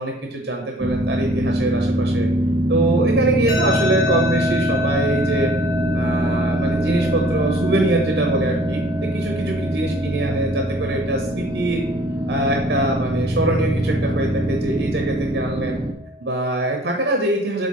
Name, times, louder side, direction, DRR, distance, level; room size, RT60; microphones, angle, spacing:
voice 1, 0.0-2.3 2.7-5.5 5.9-8.8 9.1-11.8 12.3-15.8 16.2-17.7, right 2 dB, 70° right, 2 dB, 0.9 m, -23 dB
sound 1, 0.8-15.9, right 1 dB, 20° right, 0.5 m, -23 dB
sound 2, 3.5-16.5, left 3 dB, 55° left, 1.3 m, -31 dB
7.6 x 3.5 x 3.8 m, 0.83 s
head